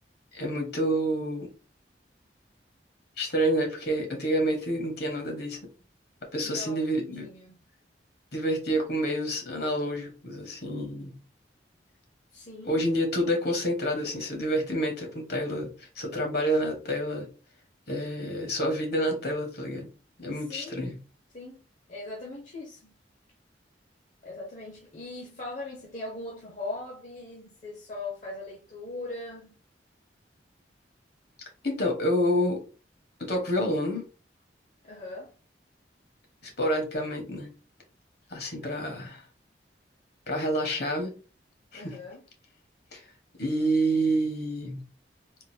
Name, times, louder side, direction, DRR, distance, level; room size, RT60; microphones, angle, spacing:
voice 1, 0.3-1.5 3.2-5.6 6.3-7.3 8.3-11.1 12.7-17.3 17.9-19.9 20.2-21.0 31.6-32.6 33.3-34.0 36.4-37.5 38.3-39.2 40.3-41.1 41.7-41.9 42.9-43.0 43.4-44.8, equal, 60° left, 1.3 m, -28 dB
voice 2, 6.4-7.6 12.3-12.9 20.4-21.0 21.3-21.6 21.9-22.9 24.2-29.6 34.8-35.3 41.7-42.3, left 2 dB, 45° left, 0.8 m, -40 dB
3.8 x 2.6 x 2.7 m
head